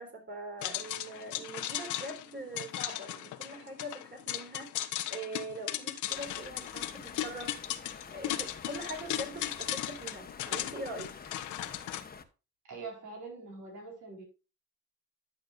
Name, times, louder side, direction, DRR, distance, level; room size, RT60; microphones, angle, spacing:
voice 1, 0.0-4.7 5.1-7.5 8.1-11.1, right 1 dB, 35° right, 4.1 m, -42 dB
sound 1, 0.6-12.0, left 13 dB, 85° left, 0.8 m, -37 dB
sound 2, 6.1-12.2, left 5 dB, 30° left, 1.1 m, -49 dB
voice 2, 12.6-14.2, right 4 dB, 70° right, 4.5 m, -44 dB
10.5 x 7.6 x 2.5 m
cardioid pair, 90°, 30 cm